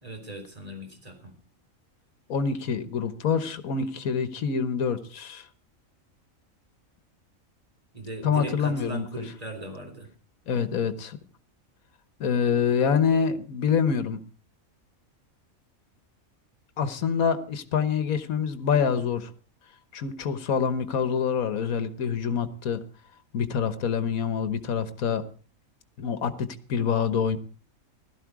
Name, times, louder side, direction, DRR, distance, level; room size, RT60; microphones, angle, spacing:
voice 1, 0.0-1.3 7.9-10.1, right 2 dB, 25° right, 4 dB, 3.7 m, -38 dB
voice 2, 2.3-5.5 8.2-9.0 10.5-11.2 12.2-14.2 16.8-19.3 19.9-22.8 23.3-25.2 26.0-27.4, left 6 dB, 85° left, 11 dB, 1.6 m, -26 dB
16.5 x 13.0 x 4.8 m, 0.39 s
omnidirectional pair, 1.4 m